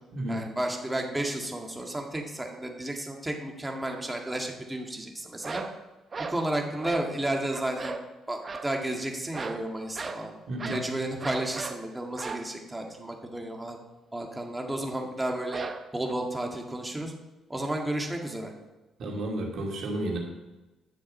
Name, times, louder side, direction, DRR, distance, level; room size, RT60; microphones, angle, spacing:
voice 1, 0.3-5.6 6.3-8.0 8.3-10.3 10.7-13.8 14.1-15.6 15.9-17.1 17.5-18.5, right 1 dB, 10° right, 1 dB, 2.0 m, -32 dB
sound 1, 5.4-5.8 6.1-6.4 6.8-7.1 7.5-8.1 8.4-8.7 9.3-9.7 9.9-10.3 10.6-10.9 11.2-11.8 12.2-12.5 15.5-16.1, right 4 dB, 35° right, 0.9 m, -36 dB
voice 2, 10.5-10.8 19.0-20.2, right 1 dB, 65° right, 0 dB, 2.7 m, -32 dB
10.5 x 7.2 x 5.5 m, 1.1 s
supercardioid pair, 70°, 0 cm